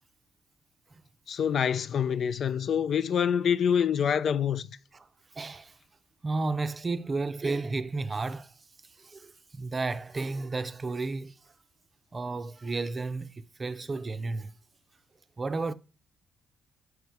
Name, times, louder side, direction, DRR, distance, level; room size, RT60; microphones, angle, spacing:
voice 1, 1.3-4.8, left 8 dB, 60° left, 0.3 m, -26 dB
voice 2, 5.4-5.7 6.2-8.5 9.0-11.3 12.1-14.5 15.4-15.7, right 3 dB, 35° right, 0.5 m, -32 dB
6.5 x 4.7 x 4.7 m
supercardioid pair, 60°, 0 cm